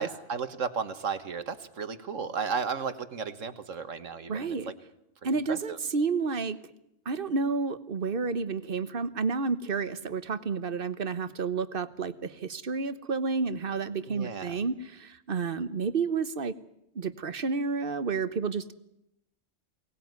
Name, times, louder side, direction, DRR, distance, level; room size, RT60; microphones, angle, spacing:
voice 1, 0.0-4.8 5.2-5.8 14.1-14.6, right 5 dB, 75° right, 11 dB, 1.8 m, -34 dB
voice 2, 4.3-4.7 5.2-6.6 7.0-16.5 16.9-18.7, right 4 dB, 45° right, 13 dB, 1.2 m, -30 dB
23.5 x 19.0 x 9.5 m, 0.81 s
omnidirectional pair, 1.3 m